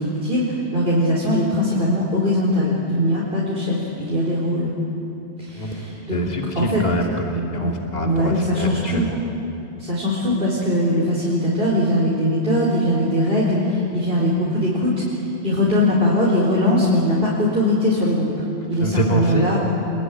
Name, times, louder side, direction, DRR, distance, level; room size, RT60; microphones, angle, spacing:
voice 1, 0.0-4.7 5.4-6.2 6.5-6.8 7.6-7.7 8.0-9.1 9.8-18.3 18.7-19.6, left 1 dB, 55° right, -6 dB, 4.5 m, -21 dB
voice 2, 6.1-9.2 18.8-19.5, right 1 dB, 35° left, 0 dB, 2.6 m, -24 dB
27.0 x 22.5 x 9.8 m, 2.8 s
omnidirectional pair, 1.2 m